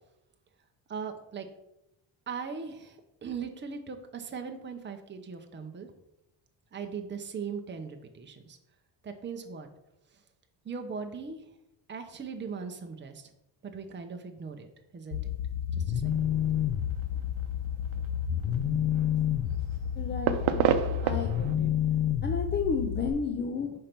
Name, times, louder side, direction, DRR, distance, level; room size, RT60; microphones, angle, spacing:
voice 1, 0.9-1.5 2.3-5.9 6.7-8.6 9.0-9.7 10.6-11.4 11.9-13.2 13.6-14.7 14.9-15.2 15.8-16.1, right 5 dB, 25° right, 5 dB, 0.7 m, -39 dB
sound 1, 15.1-23.1, left 9 dB, 65° left, 0.7 m, -29 dB
sound 2, 16.0-21.6, right 9 dB, 75° right, 0.7 m, -33 dB
voice 2, 20.0-20.8 21.0-21.7 22.2-23.7, left 5 dB, 25° left, 4 dB, 0.5 m, -32 dB
5.7 x 4.5 x 5.1 m, 0.85 s
cardioid pair, 135°, 48 cm